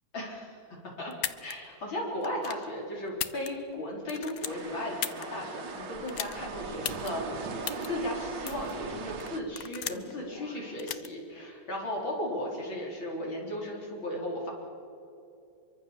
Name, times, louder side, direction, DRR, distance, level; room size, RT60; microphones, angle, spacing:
voice 1, 0.1-0.6 0.8-1.1 1.4-14.5, left 1 dB, 90° left, -2 dB, 5.1 m, -36 dB
sound 1, 1.1-1.5 2.2-2.6 3.1-3.8 4.1-5.2 6.1-6.3 6.8-7.1 7.6-7.9 8.5-8.7 9.2-10.1 10.8-11.1, left 9 dB, 60° left, 1.2 m, -35 dB
sound 2, 4.4-9.4, right 5 dB, 70° right, 2.0 m, -39 dB
sound 3, 4.5-10.8, equal, 10° left, 2.6 m, -49 dB
25.0 x 24.0 x 7.2 m, 2.7 s
omnidirectional pair, 2.1 m